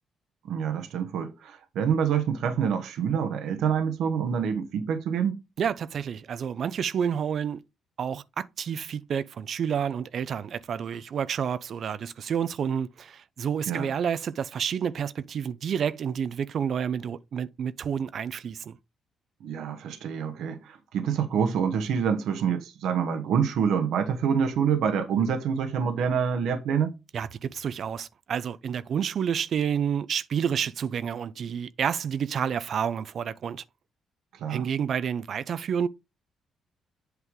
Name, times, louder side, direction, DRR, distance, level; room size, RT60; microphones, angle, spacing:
voice 1, 0.4-5.4 13.7-13.9 19.4-26.9 34.3-34.7, right 7 dB, 80° right, 1.0 m, -26 dB
voice 2, 5.6-7.6 8.0-18.8 27.1-33.6 34.5-35.9, right 7 dB, 60° right, 0.4 m, -29 dB
8.1 x 4.7 x 3.7 m
cardioid pair, 90°, 0 cm